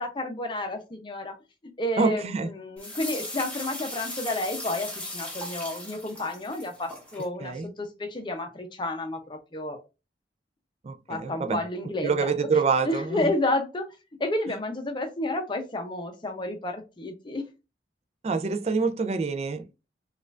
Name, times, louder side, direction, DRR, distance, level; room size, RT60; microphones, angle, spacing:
voice 1, 0.0-1.3 1.8-9.8 11.1-12.3 12.8-13.8 14.2-17.4, left 1 dB, 25° left, 0.6 m, -31 dB
voice 2, 2.0-2.5 7.4-7.7 10.8-11.6 12.0-13.2 18.2-19.6, right 4 dB, 35° right, 0.4 m, -26 dB
sound 1, 2.8-7.3, left 1 dB, 10° left, 1.0 m, -38 dB
4.2 x 2.4 x 2.4 m
head